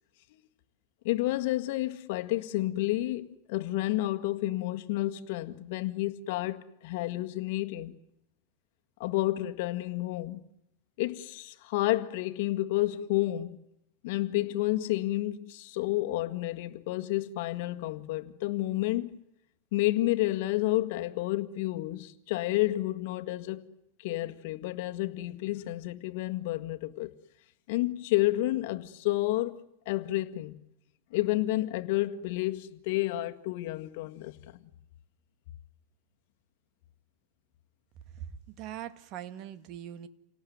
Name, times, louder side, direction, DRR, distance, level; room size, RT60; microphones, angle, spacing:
voice 1, 1.0-8.0 9.0-10.4 11.0-13.6 14.0-19.2 19.7-23.7 24.0-27.1 27.7-30.6 31.1-34.4, left 17 dB, 65° left, 1.8 m, -30 dB
voice 2, 38.1-40.1, right 10 dB, 45° right, 1.9 m, -41 dB
29.0 x 18.5 x 9.5 m
supercardioid pair, 140°, 0 cm